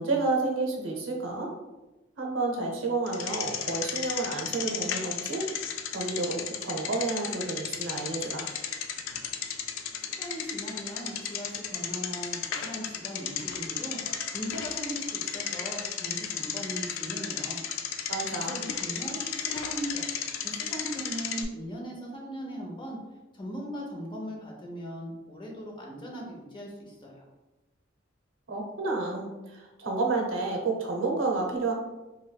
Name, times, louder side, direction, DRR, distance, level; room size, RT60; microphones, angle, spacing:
voice 1, 0.0-1.5 2.2-5.4 5.9-8.5 18.1-18.6 28.5-31.7, right 3 dB, 75° right, 0 dB, 0.7 m, -30 dB
Bicycle, 3.1-21.4, left 8 dB, 75° left, 0.3 m, -34 dB
voice 2, 10.2-14.0 14.3-17.6 18.4-20.1 20.4-23.0 23.3-27.3, equal, 25° left, -1 dB, 0.6 m, -39 dB
3.1 x 2.9 x 2.3 m, 1.1 s
head